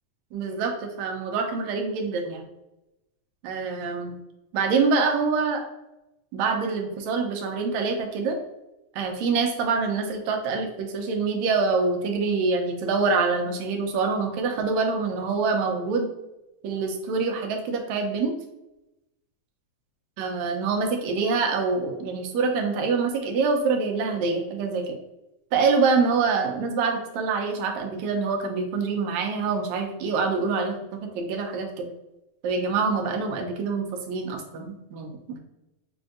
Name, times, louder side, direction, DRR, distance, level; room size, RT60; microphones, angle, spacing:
voice 1, 0.3-2.5 3.4-4.1 4.5-5.6 6.3-8.4 8.9-16.1 16.6-18.3 20.2-25.0 25.5-31.9 32.4-35.4, right 4 dB, 75° right, 3 dB, 1.8 m, -25 dB
5.9 x 2.5 x 2.5 m, 0.93 s
omnidirectional pair, 3.6 m